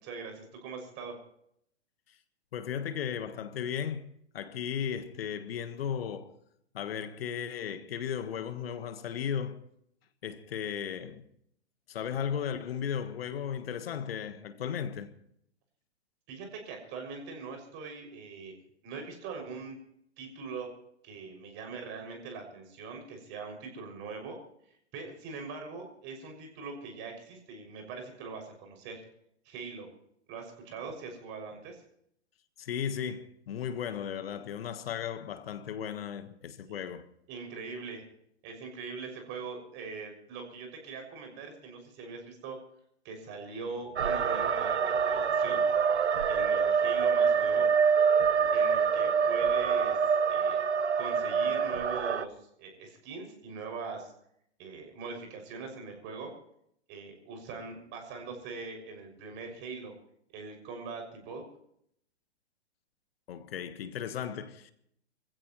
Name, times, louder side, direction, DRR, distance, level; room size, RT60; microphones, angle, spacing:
voice 1, 0.0-1.2 16.3-18.5 18.8-19.8 20.2-20.7 21.0-24.4 24.9-29.0 29.4-29.9 30.3-31.8 36.7-36.8 37.3-38.0 38.4-42.6 43.0-45.6 46.3-47.7 48.5-50.0 50.3-50.6 51.0-54.1 54.6-56.3 56.9-59.9 60.3-61.4, right 4 dB, 35° right, 6.4 m, -42 dB
voice 2, 2.5-4.1 4.3-6.3 6.7-9.6 10.2-11.2 11.9-15.1 32.6-37.1 63.3-64.7, left 8 dB, 60° left, 1.5 m, -35 dB
sound 1, 44.0-52.2, right 6 dB, 80° right, 1.1 m, -26 dB
26.0 x 16.0 x 3.1 m
hypercardioid pair, 120°, 34 cm